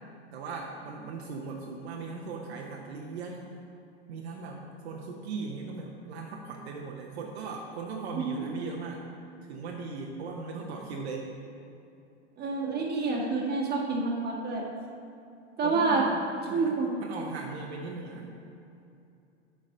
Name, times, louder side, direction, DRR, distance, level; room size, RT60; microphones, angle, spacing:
voice 1, 0.3-3.5 4.1-9.0 9.5-11.2 15.6-16.7 17.0-18.3, right 4 dB, 65° right, 0 dB, 1.0 m, -38 dB
voice 2, 8.1-8.5 12.4-14.6 15.6-16.0 16.5-16.9, right 4 dB, 30° right, -2 dB, 1.6 m, -28 dB
6.6 x 4.7 x 6.4 m, 2.6 s
hypercardioid pair, 100°, 34 cm